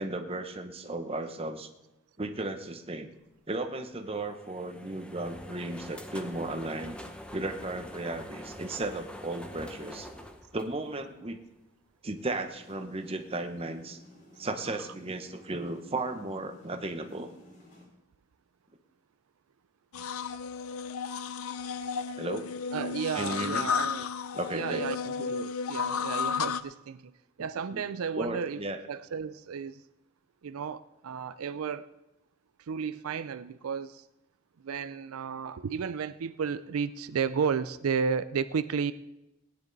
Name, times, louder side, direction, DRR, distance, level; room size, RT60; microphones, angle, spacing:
voice 1, 0.0-1.7 2.2-3.1 3.5-6.9 7.3-10.1 10.5-11.4 12.0-14.0 14.4-17.3 22.2-22.5 23.2-23.6 24.3-24.8 27.7-27.8 28.2-28.8, right 2 dB, 25° right, 6 dB, 0.9 m, -35 dB
sound 1, 4.0-11.3, equal, 5° left, 0.8 m, -45 dB
sound 2, 12.1-17.8, left 1 dB, 40° left, 4.1 m, -54 dB
sound 3, 19.9-26.6, left 6 dB, 85° left, 0.6 m, -33 dB
voice 2, 22.7-24.1 24.5-28.6 28.9-29.8 30.4-31.9 32.7-34.0 34.6-38.9, right 6 dB, 85° right, 13 dB, 0.4 m, -33 dB
18.5 x 9.8 x 4.0 m, 0.93 s
head